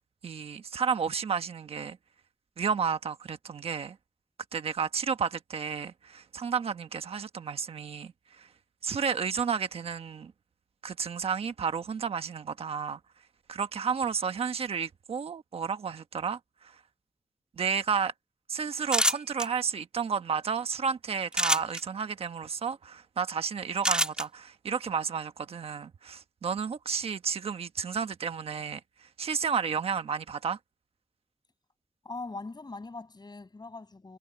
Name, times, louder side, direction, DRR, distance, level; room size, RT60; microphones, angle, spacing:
voice 1, 0.2-2.0 2.6-4.0 4.5-8.5 8.8-10.3 10.8-13.0 13.5-16.7 17.6-18.1 18.5-30.6, right 6 dB, 90° right, 1.3 m, -32 dB
sound 1, 18.9-19.5 21.3-21.8 23.8-24.2, equal, 10° right, 1.7 m, -25 dB
voice 2, 32.0-34.2, left 3 dB, 45° left, 7.2 m, -41 dB
cardioid pair, 50°, 10 cm